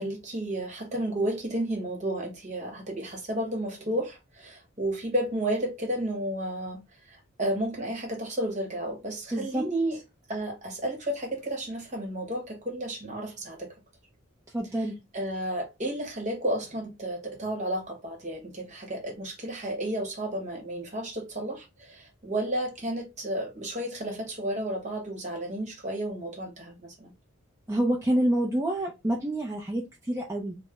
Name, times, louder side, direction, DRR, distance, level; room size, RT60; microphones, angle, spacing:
voice 1, 0.0-6.8 7.1-10.0 10.3-13.7 15.1-27.1, right 1 dB, 35° right, 1.0 m, -32 dB
voice 2, 9.3-9.6 14.5-14.9 27.7-30.6, right 1 dB, 15° right, 0.5 m, -27 dB
3.2 x 2.1 x 3.5 m
head